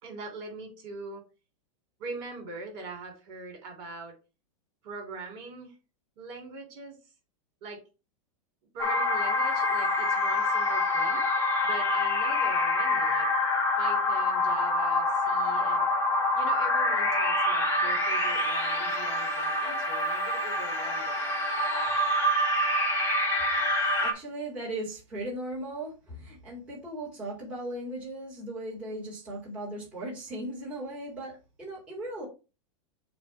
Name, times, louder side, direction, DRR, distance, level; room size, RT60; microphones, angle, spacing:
voice 1, 0.0-1.2 2.0-4.1 4.8-5.7 6.2-7.0 7.6-7.8 8.7-11.2 11.6-13.3 13.8-15.9 16.3-21.5, right 3 dB, 45° right, 2 dB, 3.1 m, -42 dB
sound 1, 8.8-24.1, left 1 dB, 15° left, 1.1 m, -26 dB
voice 2, 23.7-32.3, right 1 dB, 5° right, -7 dB, 2.3 m, -38 dB
6.9 x 2.7 x 5.6 m, 0.31 s
supercardioid pair, 165°, 17 cm